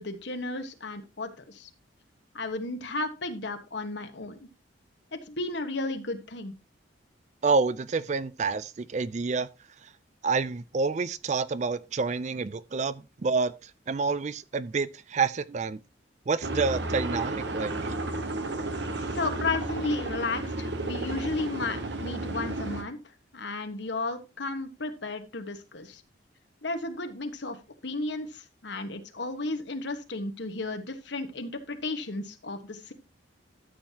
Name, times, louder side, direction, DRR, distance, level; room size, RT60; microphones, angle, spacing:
voice 1, 0.0-1.7 2.3-4.5 5.1-6.5 18.8-23.0 23.3-26.0 26.6-27.6 27.8-32.9, left 2 dB, 65° left, 1.4 m, -33 dB
voice 2, 7.4-9.5 9.8-9.9 10.2-15.8 16.3-18.0, right 4 dB, 35° right, 0.4 m, -28 dB
sound 1, 16.4-22.8, right 2 dB, 60° right, 1.3 m, -32 dB
13.0 x 7.5 x 2.8 m
head